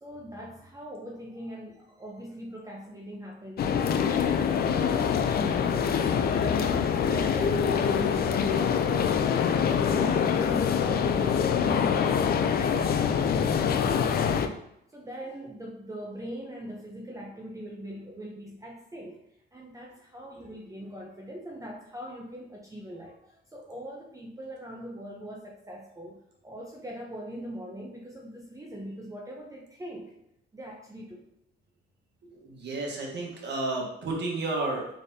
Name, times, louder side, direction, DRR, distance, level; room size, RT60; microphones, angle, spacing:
voice 1, 0.0-6.1 6.4-14.5 14.9-19.2 19.5-30.1 30.5-31.3, equal, 15° right, -2 dB, 0.6 m, -42 dB
sound 1, 3.6-14.5, left 7 dB, 50° left, 0.4 m, -25 dB
voice 2, 32.2-35.0, right 2 dB, 60° right, -1 dB, 1.2 m, -32 dB
4.0 x 3.4 x 2.7 m, 0.78 s
cardioid pair, 90°, 20 cm